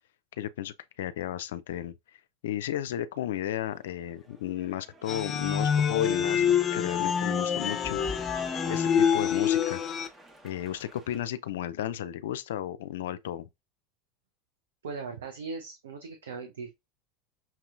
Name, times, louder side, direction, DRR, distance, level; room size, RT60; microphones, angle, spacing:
voice 1, 0.4-1.9 2.4-8.0 8.7-9.8 10.4-13.5, left 11 dB, 75° left, 0.4 m, -34 dB
Cheering / Applause, 3.6-11.3, left 1 dB, 15° right, 1.1 m, -49 dB
sound 1, 5.1-10.1, left 8 dB, 30° left, 0.7 m, -26 dB
voice 2, 14.8-16.7, right 4 dB, 80° right, 0.7 m, -39 dB
5.9 x 2.9 x 2.5 m
hypercardioid pair, 85°, 0 cm